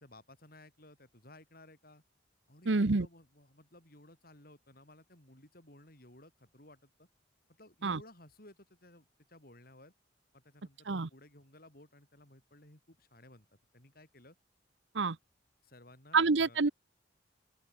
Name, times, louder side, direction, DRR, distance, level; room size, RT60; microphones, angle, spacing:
voice 1, 0.0-2.0 2.5-7.1 7.6-9.9 10.3-14.4 15.6-16.6, left 1 dB, 55° left, 7.8 m, -57 dB
voice 2, 2.7-3.1 7.8-8.0 10.9-11.1 14.9-15.2 16.1-16.7, right 4 dB, 90° right, 0.9 m, -27 dB
open air
head